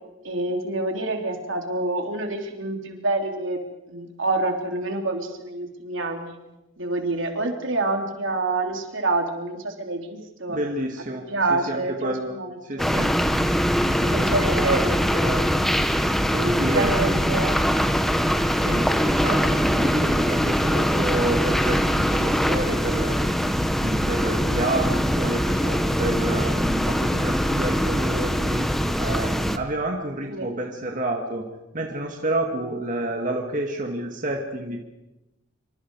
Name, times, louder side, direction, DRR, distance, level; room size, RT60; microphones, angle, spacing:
voice 1, 0.2-3.6 3.9-6.4 6.8-10.6 11.1-13.0 14.1-14.9 16.6-17.6 30.3-30.5, right 2 dB, 80° right, 3 dB, 3.5 m, -27 dB
voice 2, 10.5-12.3 12.6-13.1 13.7-15.4 16.3-17.5 18.5-23.2 23.8-28.6 29.0-31.4 31.7-34.8, right 1 dB, 40° right, 1 dB, 2.3 m, -29 dB
sound 1, 12.8-29.6, equal, ahead, 1.1 m, -22 dB
27.0 x 25.5 x 4.9 m, 0.98 s
head